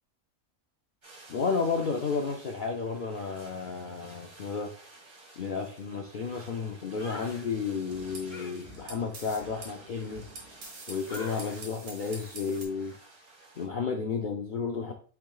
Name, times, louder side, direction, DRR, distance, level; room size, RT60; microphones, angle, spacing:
sound 1, 1.0-13.7, right 2 dB, 40° right, 2.2 m, -53 dB
voice 1, 1.3-4.7 5.4-10.3 10.9-13.0 13.6-14.9, left 5 dB, 70° left, 3 dB, 0.4 m, -32 dB
sound 2, 7.0-7.5 8.3-10.7 11.1-11.6 12.0-12.4 12.8-13.0, left 2 dB, 50° left, 1.2 m, -46 dB
sound 3, 7.5-12.6, right 2 dB, 85° right, 1.6 m, -46 dB
5.7 x 3.7 x 2.2 m, 0.42 s
omnidirectional pair, 1.5 m